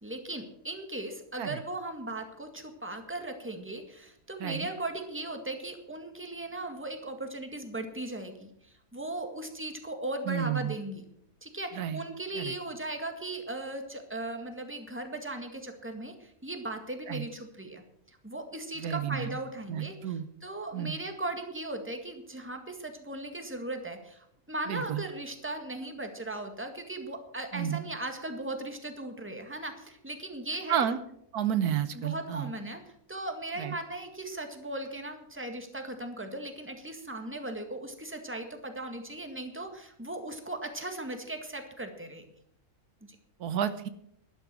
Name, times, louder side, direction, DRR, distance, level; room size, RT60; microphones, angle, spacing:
voice 1, 0.0-11.0 11.4-17.8 18.1-30.9 31.9-32.8 33.1-42.3, right 2 dB, 10° right, 5 dB, 1.9 m, -38 dB
voice 2, 10.3-10.7 11.7-12.0 12.3-12.5 17.1-17.2 18.8-19.4 19.7-20.2 20.7-20.9 24.7-25.0 27.5-27.9 30.7-31.0 31.3-32.5 33.6-33.7 43.4-43.9, right 9 dB, 85° right, 12 dB, 1.4 m, -31 dB
12.0 x 12.0 x 6.2 m, 0.71 s
omnidirectional pair, 1.6 m